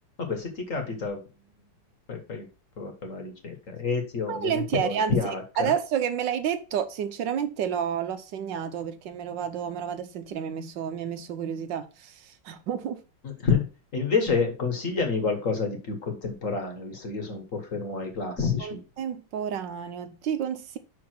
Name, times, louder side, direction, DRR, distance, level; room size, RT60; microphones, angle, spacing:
voice 1, 0.2-1.2 2.1-2.5 2.8-5.7 13.2-13.7 13.9-18.8, left 5 dB, 45° left, 1.7 m, -29 dB
voice 2, 4.3-5.1 5.6-13.0 18.6-20.8, right 8 dB, 70° right, 1.4 m, -30 dB
5.6 x 4.8 x 5.9 m
omnidirectional pair, 2.1 m